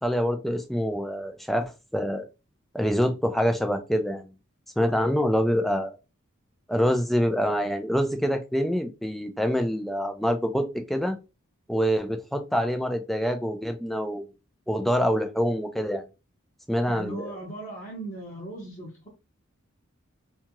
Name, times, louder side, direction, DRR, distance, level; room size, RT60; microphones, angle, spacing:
voice 1, 0.0-2.3 2.7-4.2 4.8-5.9 6.7-11.2 11.7-14.2 14.7-16.0 16.7-17.3, equal, ahead, 0.4 m, -26 dB
voice 2, 16.9-19.1, right 1 dB, 35° left, 0.8 m, -38 dB
2.7 x 2.3 x 2.9 m
head